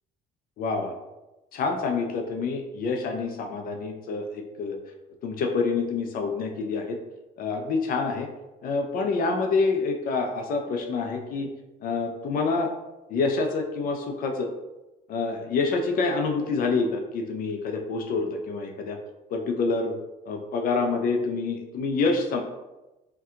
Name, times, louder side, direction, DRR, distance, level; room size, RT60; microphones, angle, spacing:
voice 1, 0.6-0.9 1.5-4.8 5.2-7.0 7.4-8.3 8.6-11.5 11.8-12.7 13.1-14.5 15.1-19.0 19.3-19.9 20.3-22.4, left 4 dB, 60° left, 4 dB, 0.4 m, -27 dB
2.7 x 2.2 x 3.6 m, 1.0 s
cardioid pair, 110°, 17 cm